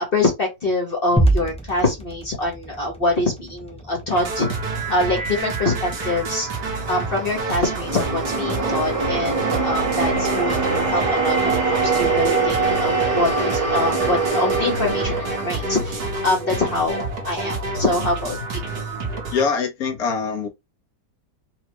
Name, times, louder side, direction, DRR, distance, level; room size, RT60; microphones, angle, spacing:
voice 1, 0.1-4.5 4.9-6.5 6.9-18.6, left 2 dB, 40° left, 1.1 m, -24 dB
sound 1, 1.2-19.4, right 1 dB, 5° left, 0.4 m, -32 dB
sound 2, 4.1-19.4, right 2 dB, 70° right, 1.7 m, -29 dB
sound 3, 6.3-16.7, right 4 dB, 25° right, 0.9 m, -24 dB
voice 2, 19.3-20.5, left 5 dB, 60° left, 1.4 m, -23 dB
4.3 x 2.3 x 2.9 m
omnidirectional pair, 1.8 m